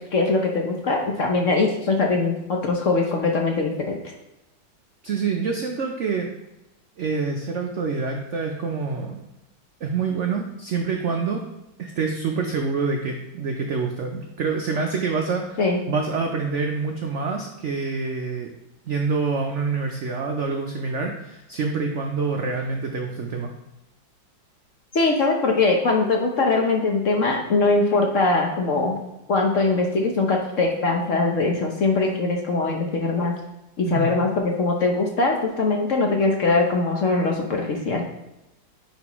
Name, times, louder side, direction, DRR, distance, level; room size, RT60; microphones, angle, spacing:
voice 1, 0.1-4.0 15.6-15.8 24.9-29.0 29.3-33.3 33.8-38.0, left 3 dB, 55° left, 1 dB, 0.9 m, -22 dB
voice 2, 5.0-6.3 7.0-9.2 9.8-11.4 11.8-18.5 18.9-23.5 33.9-34.1, right 4 dB, 80° right, 2 dB, 0.6 m, -26 dB
9.5 x 4.1 x 3.0 m, 0.94 s
omnidirectional pair, 2.0 m